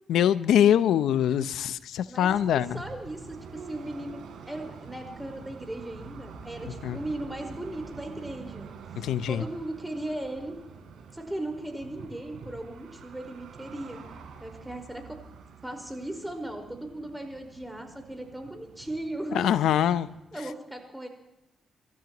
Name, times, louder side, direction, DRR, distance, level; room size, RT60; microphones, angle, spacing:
voice 1, 0.1-2.8 6.8-7.0 9.0-9.4 19.3-20.1, left 10 dB, 85° left, 15 dB, 0.6 m, -23 dB
voice 2, 2.1-8.7 9.2-10.6 11.1-14.0 14.4-15.2 15.6-19.5 20.3-21.1, right 1 dB, 10° right, 3 dB, 4.8 m, -37 dB
sound 1, 2.2-20.2, right 6 dB, 80° right, 3.8 m, -46 dB
29.0 x 13.5 x 3.0 m, 0.93 s
supercardioid pair, 60°, 0 cm